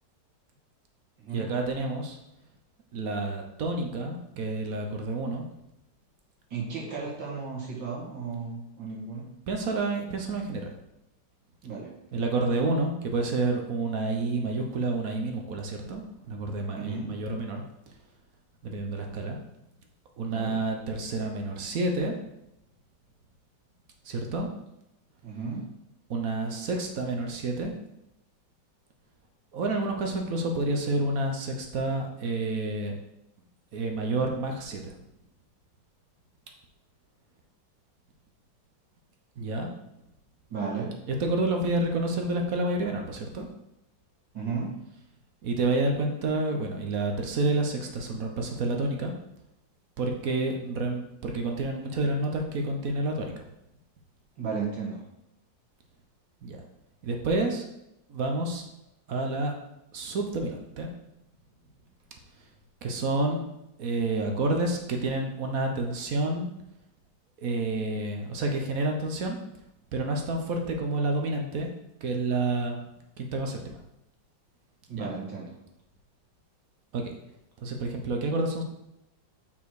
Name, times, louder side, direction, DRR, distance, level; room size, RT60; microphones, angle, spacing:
voice 1, 1.3-2.2 2.9-5.4 9.5-10.7 12.1-17.6 18.6-19.4 20.2-22.1 24.0-24.5 26.1-27.7 29.5-33.0 33.7-34.9 39.4-39.7 41.1-43.5 45.4-49.1 50.0-53.4 56.4-56.6 57.0-57.7 58.1-58.6 59.1-59.5 59.9-60.9 62.8-63.4 63.8-66.5 67.4-69.4 69.9-71.7 72.0-72.8 73.2-73.8 74.9-75.1 76.9-77.1 77.6-78.6, right 2 dB, 55° right, 3 dB, 1.2 m, -29 dB
voice 2, 6.5-9.3 11.6-11.9 16.7-17.1 20.3-20.5 25.2-25.7 40.5-40.9 44.3-44.7 54.4-55.0 74.9-75.6, right 5 dB, 85° right, -3 dB, 2.5 m, -34 dB
5.8 x 4.6 x 4.8 m, 0.86 s
omnidirectional pair, 1.9 m